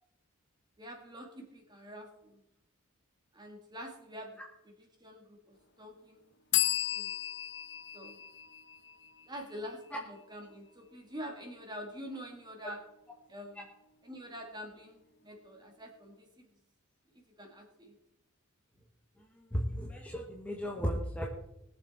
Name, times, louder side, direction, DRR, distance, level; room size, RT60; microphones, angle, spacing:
voice 1, 0.8-2.4 3.3-4.4 5.0-6.2 6.9-7.1 7.9-8.2 9.3-12.8 13.3-13.6 14.0-16.5 17.4-17.9, equal, 20° right, 2 dB, 2.2 m, -46 dB
sound 1, 6.5-10.1, left 13 dB, 55° left, 0.9 m, -34 dB
voice 2, 19.4-21.3, equal, 5° left, -1 dB, 1.2 m, -35 dB
21.0 x 7.1 x 4.4 m, 0.85 s
head